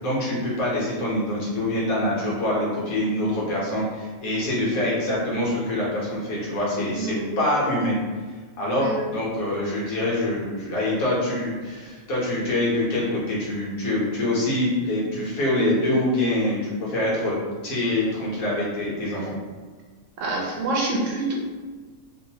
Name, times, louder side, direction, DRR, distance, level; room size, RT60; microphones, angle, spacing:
voice 1, 0.0-7.9 8.6-17.4 17.6-19.3, left 1 dB, 70° left, -6 dB, 1.3 m, -25 dB
voice 2, 6.9-7.3 8.8-9.1 20.2-21.3, right 2 dB, 65° right, -2 dB, 0.9 m, -26 dB
3.0 x 2.1 x 2.7 m, 1.5 s
omnidirectional pair, 1.6 m